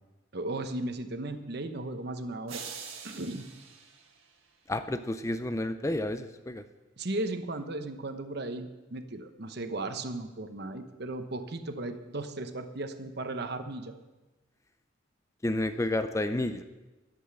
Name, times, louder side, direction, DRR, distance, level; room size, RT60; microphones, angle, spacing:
voice 1, 0.3-2.6 3.0-3.5 7.0-13.9, right 2 dB, 50° right, 8 dB, 0.9 m, -36 dB
sound 1, 2.5-4.8, right 6 dB, 80° right, 1.6 m, -45 dB
voice 2, 4.7-6.6 15.4-16.6, left 1 dB, 15° left, 9 dB, 0.4 m, -30 dB
11.5 x 7.9 x 7.6 m, 1.1 s
head